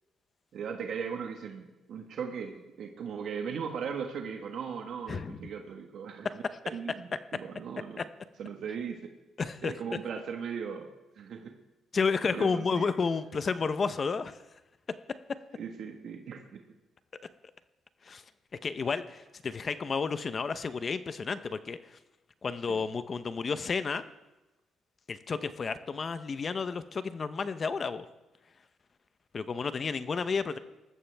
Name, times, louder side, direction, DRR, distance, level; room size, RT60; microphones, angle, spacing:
voice 1, 0.5-8.0 8.4-9.1 9.6-10.9 11.1-11.5 12.3-12.9 15.5-16.6 22.7-22.8, right 6 dB, 70° right, 3 dB, 1.4 m, -38 dB
voice 2, 9.4-9.7 11.9-14.3 18.0-18.2 18.6-21.8 22.4-24.0 25.1-28.0 29.3-30.6, left 5 dB, 40° left, 12 dB, 0.8 m, -31 dB
20.0 x 14.0 x 3.5 m, 1.0 s
cardioid pair, 90°, 0 cm